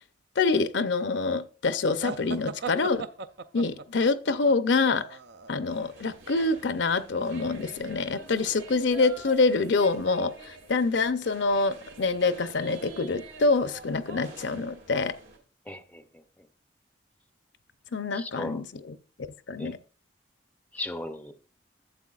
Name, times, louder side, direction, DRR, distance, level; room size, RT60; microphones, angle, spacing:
voice 1, 0.4-3.1 3.5-5.1 5.5-15.2 17.9-19.0 19.5-19.8, left 3 dB, 70° left, 0.6 m, -26 dB
sound 1, 2.0-5.7, right 4 dB, 60° right, 0.5 m, -38 dB
sound 2, 5.7-15.4, right 3 dB, 80° right, 2.5 m, -47 dB
voice 2, 15.7-16.0 18.1-18.6 19.6-19.7 20.7-21.5, left 1 dB, 10° left, 0.5 m, -37 dB
11.5 x 7.9 x 2.4 m
head